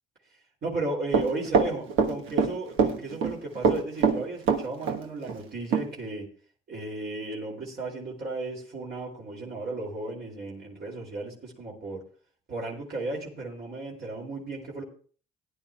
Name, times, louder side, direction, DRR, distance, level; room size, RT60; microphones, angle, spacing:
voice 1, 0.6-6.3 6.7-12.1 12.5-14.8, right 2 dB, 55° right, -4 dB, 2.9 m, -35 dB
Run, 1.1-2.5 2.8-3.3 3.6-5.0 5.3-5.4 5.7-5.8, right 5 dB, 85° right, 1.3 m, -23 dB
17.5 x 10.5 x 2.3 m, 0.43 s
cardioid pair, 90°, 20 cm